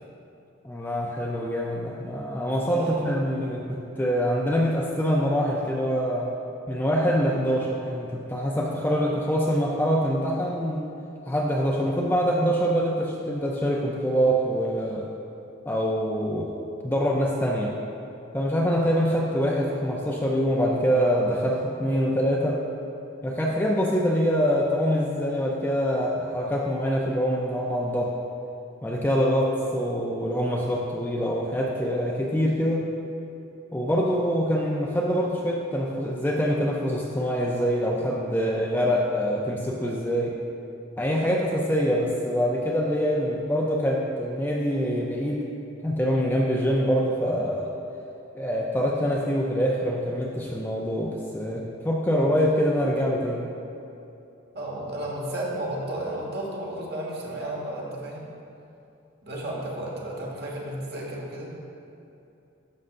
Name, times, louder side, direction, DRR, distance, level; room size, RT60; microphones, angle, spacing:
voice 1, 0.6-6.3 6.7-10.9 11.3-15.1 15.7-16.5 16.8-17.7 18.3-22.6 23.2-28.1 28.8-32.9 33.7-40.4 41.0-45.4 45.8-47.7 48.3-53.5, equal, 10° left, -2 dB, 0.4 m, -25 dB
voice 2, 2.6-3.1 18.7-18.9 54.5-58.3 59.2-61.6, right 1 dB, 50° right, -3 dB, 1.3 m, -33 dB
11.0 x 6.5 x 2.5 m, 2.7 s
head